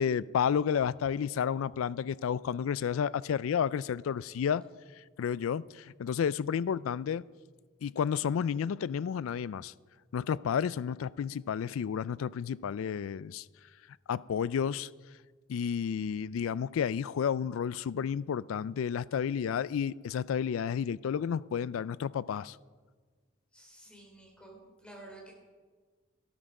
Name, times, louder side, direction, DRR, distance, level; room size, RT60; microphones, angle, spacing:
voice 1, 0.0-4.6 5.0-7.2 7.8-9.7 10.1-13.5 14.1-14.9 15.5-22.6, left 7 dB, 80° left, 0.3 m, -31 dB
voice 2, 23.5-25.3, right 2 dB, 5° left, 3.5 m, -51 dB
13.0 x 12.5 x 4.9 m
head